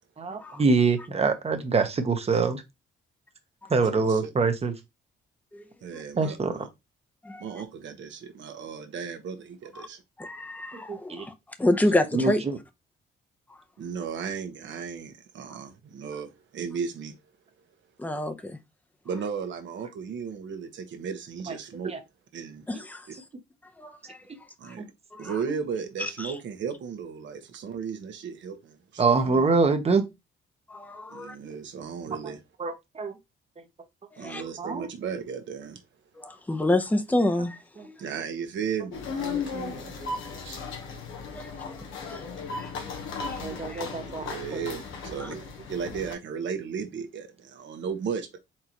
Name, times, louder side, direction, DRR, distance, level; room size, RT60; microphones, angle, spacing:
voice 1, 0.2-2.6 3.7-4.8 6.2-6.7 10.7-11.3 12.1-12.6 21.5-21.6 21.8-22.0 24.8-24.9 25.5-25.6 29.0-30.0 32.2-32.3 32.6-33.1 34.4-34.9 37.8-37.9 43.4-44.6 45.3-45.5, right 4 dB, 30° right, 1.1 m, -25 dB
voice 2, 3.9-4.3 5.8-6.7 7.4-10.0 13.8-17.1 19.0-21.9 22.3-22.6 24.6-24.9 25.2-29.4 31.1-32.4 34.2-35.8 38.0-40.6 43.6-45.4 45.7-48.4, right 6 dB, 70° right, 1.3 m, -35 dB
voice 3, 10.2-11.3 11.6-12.4 18.0-18.6 22.7-23.1 23.8-24.2 24.6-24.7 25.1-25.3 26.0-26.3 30.7-31.4 34.2-34.4 36.2-37.9 41.3-41.8 42.0-43.0 43.5-43.8 45.2-45.3, left 1 dB, 10° left, 0.8 m, -29 dB
sound 1, 38.9-46.1, left 5 dB, 80° left, 1.2 m, -36 dB
4.4 x 3.9 x 3.0 m
cardioid pair, 90°, 20 cm